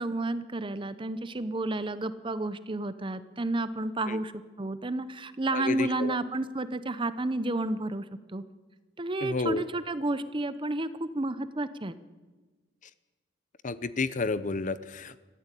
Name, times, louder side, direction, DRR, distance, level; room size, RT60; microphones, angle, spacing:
voice 1, 0.0-4.3 4.6-8.0 8.3-8.4 9.0-11.9, right 2 dB, 25° right, 13 dB, 0.7 m, -31 dB
voice 2, 5.5-6.2 9.2-9.6 13.6-15.1, left 3 dB, 40° left, 15 dB, 0.7 m, -31 dB
21.5 x 14.5 x 8.4 m, 1.3 s
head